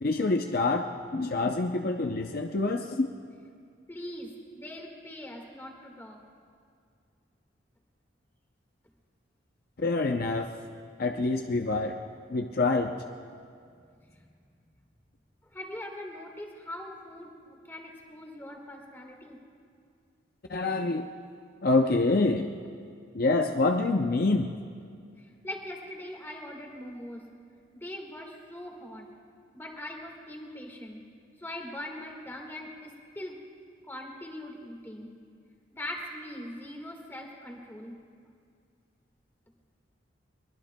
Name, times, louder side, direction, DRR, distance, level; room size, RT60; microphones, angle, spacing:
voice 1, 0.0-3.1 9.8-10.5 11.0-12.0 12.3-13.0 20.5-21.1 21.6-22.5 23.1-24.5, left 3 dB, 50° left, 4 dB, 0.5 m, -26 dB
voice 2, 3.9-6.2 14.0-14.2 15.4-19.4 25.2-27.2 27.7-29.1 29.5-31.0 31.4-33.4 33.9-35.1 35.7-38.0, left 1 dB, 10° left, 2 dB, 1.6 m, -41 dB
23.0 x 21.5 x 2.2 m, 2.3 s
head